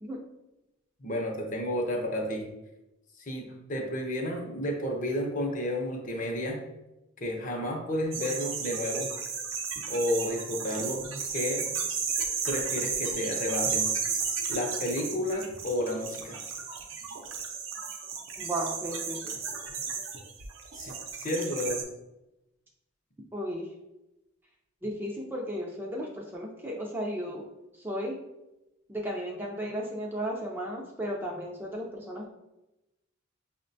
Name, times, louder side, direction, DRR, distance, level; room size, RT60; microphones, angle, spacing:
voice 1, 1.0-2.5 3.2-6.6 7.2-9.1 9.9-11.7 12.4-13.9 14.5-16.4 20.7-21.8, left 1 dB, 40° left, 2 dB, 0.6 m, -31 dB
sound 1, 8.1-21.8, right 5 dB, 80° right, 0.6 m, -34 dB
voice 2, 18.4-19.4 23.3-23.7 24.8-27.4 27.8-28.2 28.9-32.3, equal, 10° right, -2 dB, 0.4 m, -34 dB
6.0 x 2.1 x 2.6 m, 0.94 s
head